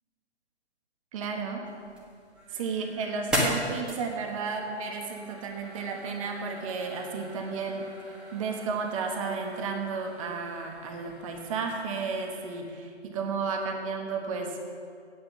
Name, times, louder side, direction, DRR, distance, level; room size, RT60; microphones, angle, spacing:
voice 1, 1.1-1.7 2.5-14.6, right 4 dB, 30° right, 2 dB, 1.1 m, -33 dB
sound 1, 1.6-12.6, equal, 5° right, 1.2 m, -38 dB
8.6 x 8.3 x 7.2 m, 2.3 s
figure-of-eight pair, 125°, 35 cm